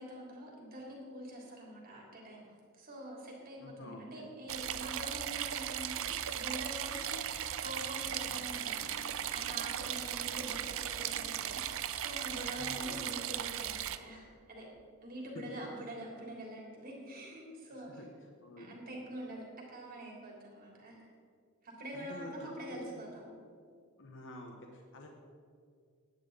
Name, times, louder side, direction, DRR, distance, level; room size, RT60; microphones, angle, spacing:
voice 1, 0.0-2.4 2.8-9.0 9.3-14.7 15.0-18.1 18.6-21.1 21.6-23.3, right 1 dB, 40° right, -2 dB, 3.5 m, -45 dB
voice 2, 3.6-4.3 12.6-13.1 15.5-15.6 18.0-18.1 18.4-18.8 21.9-23.0 24.0-25.1, left 1 dB, 60° left, 2 dB, 1.3 m, -48 dB
sound 1, 4.5-14.0, right 10 dB, 65° right, 0.6 m, -37 dB
18.0 x 11.0 x 4.1 m, 2.2 s
head